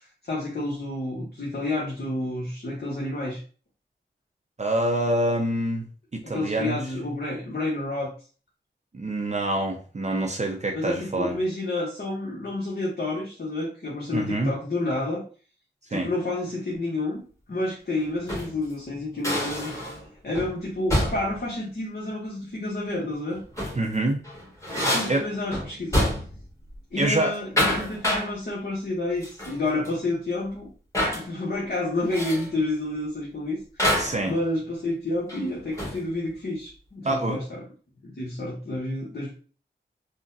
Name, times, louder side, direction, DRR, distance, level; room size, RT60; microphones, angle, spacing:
voice 1, 0.0-3.4 6.2-8.1 10.7-15.2 15.9-17.2 17.5-19.9 20.2-23.4 24.7-26.2 26.9-30.7 31.1-33.9 34.3-37.6 38.0-39.3, left 2 dB, 55° left, -4 dB, 1.0 m, -29 dB
voice 2, 4.6-5.9 6.1-6.8 8.9-11.3 14.1-14.5 15.9-16.1 23.8-24.2 25.1-25.3 27.0-27.4 34.0-34.3 37.0-37.4, right 1 dB, 40° right, 2 dB, 0.5 m, -26 dB
sound 1, 18.1-18.6 19.2-20.1 20.3-20.6 20.9-21.4 23.3-23.9 24.2-26.4 26.7-27.0 27.3-28.3 29.2-29.6 29.8-29.9 30.9-31.3 32.1-32.5 33.8-34.2 35.3-36.1, left 1 dB, 15° left, 1.4 m, -27 dB
3.7 x 2.1 x 2.6 m, 0.38 s
cardioid pair, 45°, 19 cm